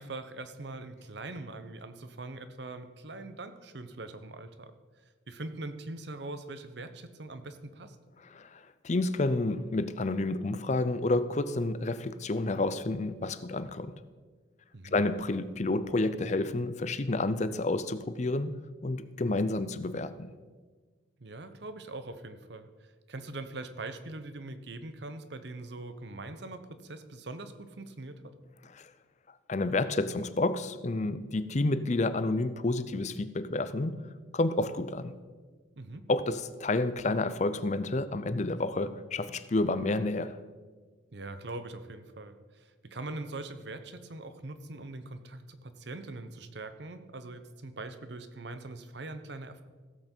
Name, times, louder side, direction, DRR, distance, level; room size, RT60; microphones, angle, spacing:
voice 1, 0.0-4.7 5.3-8.0 14.7-15.0 21.2-28.3 35.8-36.1 41.1-49.6, right 2 dB, 60° right, 0.8 m, -42 dB
voice 2, 8.3-13.9 14.9-18.5 18.8-20.3 28.8-28.9 29.5-34.0 34.3-35.1 36.1-40.4, left 2 dB, 35° left, 0.5 m, -30 dB
15.5 x 7.9 x 4.5 m
head